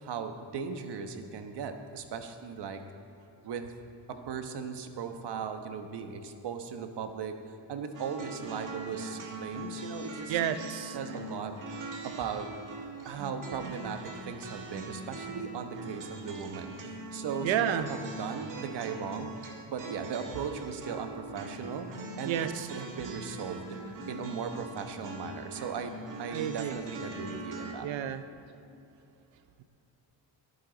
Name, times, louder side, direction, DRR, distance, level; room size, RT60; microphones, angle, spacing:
voice 1, 0.0-2.8 3.4-3.7 4.1-7.3 7.7-10.4 10.9-11.5 12.0-12.5 13.0-19.3 19.7-23.8 24.1-27.9, right 6 dB, 60° right, 7 dB, 1.2 m, -38 dB
sound 1, 7.9-27.7, right 2 dB, 45° right, 1.6 m, -42 dB
voice 2, 10.3-11.0 17.4-17.9 22.2-22.7 26.3-26.8 27.8-28.2, right 10 dB, 80° right, 10 dB, 0.9 m, -30 dB
22.0 x 9.5 x 4.0 m, 2.9 s
cardioid pair, 145°, 45 cm